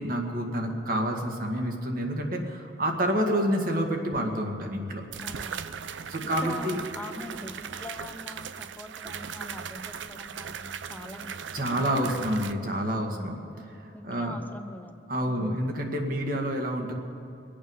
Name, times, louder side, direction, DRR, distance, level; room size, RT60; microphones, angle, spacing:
voice 1, 0.0-5.0 6.1-6.8 11.5-13.4 13.8-14.4 15.1-16.9, equal, 50° right, 2 dB, 1.8 m, -28 dB
sound 1, 4.1-4.2 5.1-12.5, right 7 dB, 90° right, 0.5 m, -38 dB
voice 2, 5.2-5.6 6.2-11.3 11.7-12.1 13.0-13.3 13.9-15.6, left 1 dB, 10° left, 7 dB, 0.7 m, -43 dB
23.5 x 8.7 x 5.6 m, 2.8 s
head